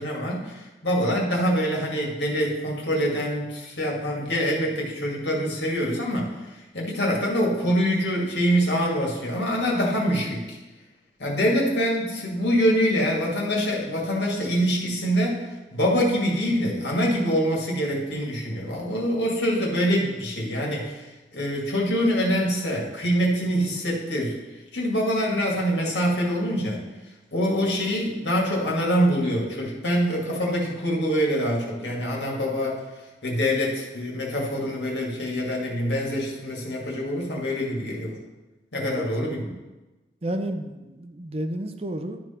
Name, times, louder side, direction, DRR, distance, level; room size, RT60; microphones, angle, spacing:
voice 1, 0.0-6.3 6.7-10.6 11.2-15.4 15.7-24.4 24.7-26.9 27.3-32.8 33.2-38.2 38.7-39.5, equal, 85° left, -2 dB, 2.2 m, -25 dB
voice 2, 40.2-42.2, right 1 dB, 35° right, 6 dB, 0.6 m, -31 dB
11.5 x 4.9 x 4.4 m, 1.1 s
head